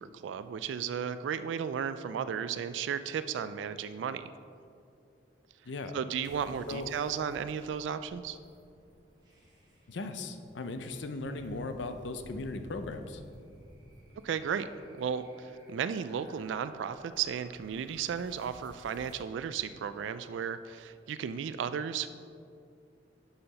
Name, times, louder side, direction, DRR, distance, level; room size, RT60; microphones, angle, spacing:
voice 1, 0.0-4.3 5.9-8.4 14.2-14.7 15.0-22.1, right 7 dB, 80° right, 12 dB, 0.3 m, -34 dB
voice 2, 5.6-6.0 6.7-6.9 9.9-13.2, left 2 dB, 75° left, 8 dB, 0.6 m, -38 dB
sound 1, 6.2-19.1, equal, 25° right, 1.3 m, -56 dB
6.8 x 5.7 x 5.3 m, 2.4 s
head